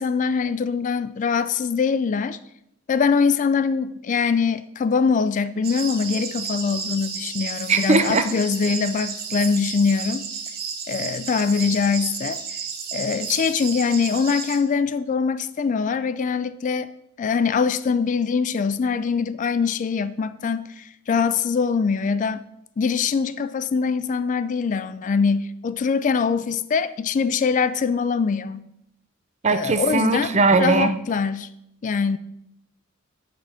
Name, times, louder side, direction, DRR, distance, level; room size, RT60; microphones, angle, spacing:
voice 1, 0.0-2.4 2.9-10.3 10.9-12.4 12.9-16.9 17.2-22.4 22.8-28.7 29.5-30.3 30.6-31.5 31.8-32.2, left 5 dB, 40° left, 0.3 m, -23 dB
sound 1, 5.6-14.6, right 6 dB, 50° right, 1.1 m, -32 dB
voice 2, 7.7-8.3 29.4-30.9, right 3 dB, 35° right, 0.6 m, -19 dB
9.6 x 4.2 x 5.6 m
head